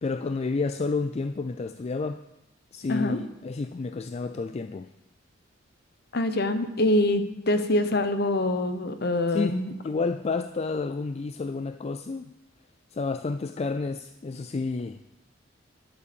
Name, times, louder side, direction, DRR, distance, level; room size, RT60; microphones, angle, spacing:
voice 1, 0.0-2.2 2.7-4.9 9.3-12.3 12.9-15.0, left 4 dB, 35° left, 10 dB, 0.3 m, -30 dB
voice 2, 2.9-3.2 6.1-9.6, left 1 dB, 55° left, 10 dB, 1.0 m, -25 dB
11.5 x 8.3 x 7.0 m, 0.90 s
head